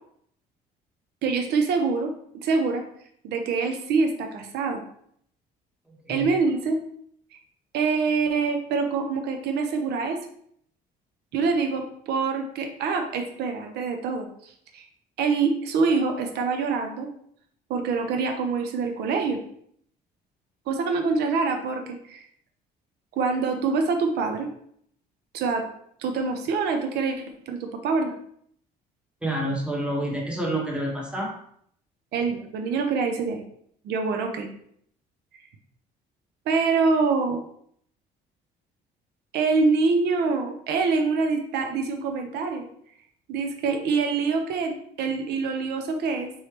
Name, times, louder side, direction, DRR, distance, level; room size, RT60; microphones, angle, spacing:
voice 1, 1.2-2.1 2.4-2.8 3.2-4.8 6.1-6.8 7.7-10.2 11.3-14.8 15.2-17.1 17.7-19.4 20.7-22.2 23.1-24.5 25.3-25.6 26.0-27.2 27.5-28.1 32.1-33.4 33.8-34.5 36.5-37.4 39.3-42.7 43.3-46.3, right 4 dB, 75° right, 5 dB, 0.7 m, -25 dB
voice 2, 29.2-31.3, right 1 dB, 5° right, -2 dB, 1.3 m, -28 dB
4.5 x 3.2 x 3.2 m, 0.66 s
cardioid pair, 110°, 17 cm